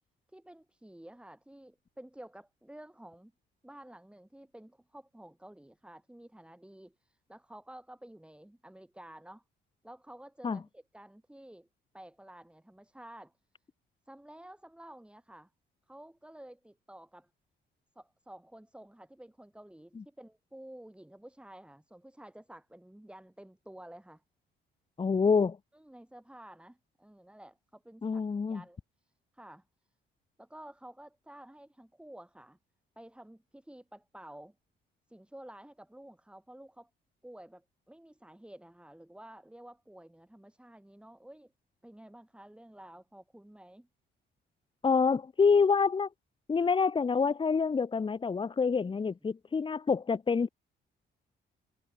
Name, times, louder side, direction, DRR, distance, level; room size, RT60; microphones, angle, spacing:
voice 1, 0.3-3.3 3.6-9.4 9.8-11.7 11.9-13.3 14.1-15.5 15.9-17.3 17.9-24.2 25.7-28.2 28.5-29.6 30.4-32.6 32.9-34.5 35.1-36.9 37.2-41.5 41.8-43.9 49.0-49.1, right 1 dB, 5° right, 5.1 m, -51 dB
voice 2, 25.0-25.6 28.0-28.6 44.8-46.1 46.5-50.5, left 5 dB, 25° left, 0.8 m, -27 dB
cardioid pair, 90°, 20 cm